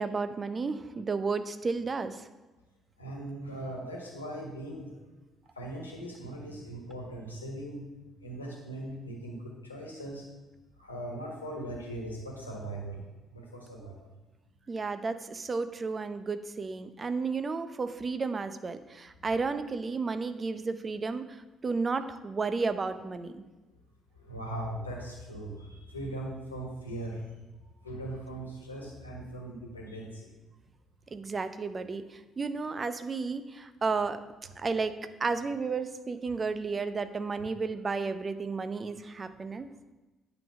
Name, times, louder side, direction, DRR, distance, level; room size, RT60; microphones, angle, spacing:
voice 1, 0.0-2.2 14.7-23.4 31.1-34.2 34.6-34.9 35.2-39.7, right 4 dB, 35° right, 11 dB, 0.7 m, -32 dB
voice 2, 3.0-5.0 5.5-7.9 8.2-10.2 10.8-14.1 24.1-27.2 27.8-30.3, right 1 dB, 90° left, -1 dB, 1.5 m, -39 dB
9.1 x 5.3 x 5.9 m, 1.1 s
figure-of-eight pair, 45°, 0 cm